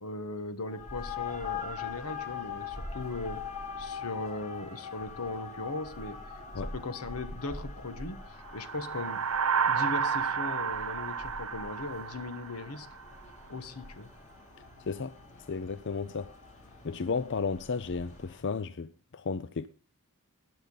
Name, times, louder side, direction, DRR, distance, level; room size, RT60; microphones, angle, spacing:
voice 1, 0.0-3.4 3.8-6.2 6.7-8.2 8.5-9.2 9.7-12.9 13.5-14.1, left 2 dB, 80° left, 1.4 m, -38 dB
sound 1, 0.7-18.6, left 5 dB, 35° left, 3.4 m, -43 dB
sound 2, 8.5-13.0, right 6 dB, 70° right, 0.7 m, -31 dB
voice 2, 14.8-15.1 15.5-16.3 16.8-19.7, left 4 dB, 55° left, 0.6 m, -33 dB
20.5 x 6.8 x 4.0 m
head